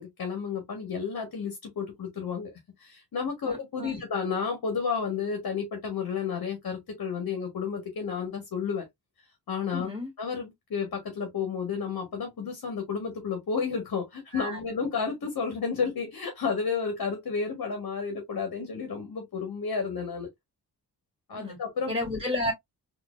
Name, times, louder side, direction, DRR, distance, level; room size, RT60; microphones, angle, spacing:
voice 1, 0.0-2.5 2.8-8.9 9.5-9.9 10.2-20.3 21.3-21.9, left 5 dB, 65° left, 1.3 m, -31 dB
voice 2, 3.4-4.0 9.7-10.1 14.3-14.6 21.4-21.6 21.9-22.5, left 1 dB, 20° right, 2.4 m, -32 dB
4.0 x 2.8 x 2.4 m
wide cardioid pair, 135°, 38 cm